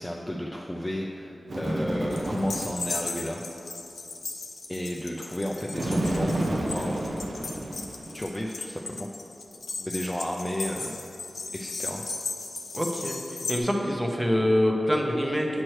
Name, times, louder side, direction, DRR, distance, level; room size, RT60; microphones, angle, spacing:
voice 1, 0.0-3.4 4.7-7.5 8.1-9.1 9.8-11.0 11.5-12.0, equal, 10° left, -1 dB, 0.4 m, -33 dB
Bird, 1.5-2.9 5.7-8.2, right 1 dB, 60° right, 0.7 m, -30 dB
sound 1, 2.1-13.6, left 3 dB, 85° left, 0.6 m, -37 dB
voice 2, 12.7-13.2 13.5-15.6, equal, 10° right, 1 dB, 0.8 m, -25 dB
8.8 x 6.1 x 3.1 m, 2.7 s
wide cardioid pair, 110°, 0 cm